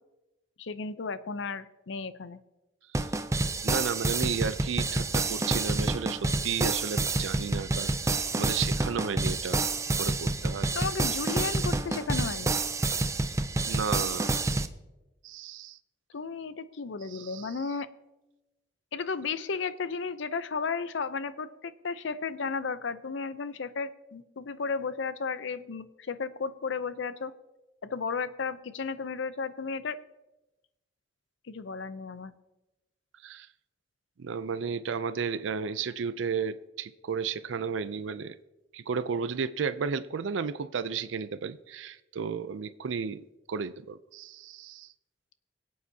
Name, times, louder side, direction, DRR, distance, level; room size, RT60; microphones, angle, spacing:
voice 1, 0.6-2.4 10.7-12.6 16.1-17.9 18.9-27.3 27.8-30.0 31.5-32.3, left 5 dB, 80° left, 0.6 m, -34 dB
sound 1, 2.9-14.7, right 2 dB, 15° right, 0.4 m, -28 dB
voice 2, 3.6-9.6 10.0-10.7 13.7-14.4 15.2-15.8 17.1-17.5 33.2-33.5 34.2-38.4 38.7-44.9, right 6 dB, 90° right, 0.5 m, -33 dB
25.0 x 8.4 x 2.8 m
head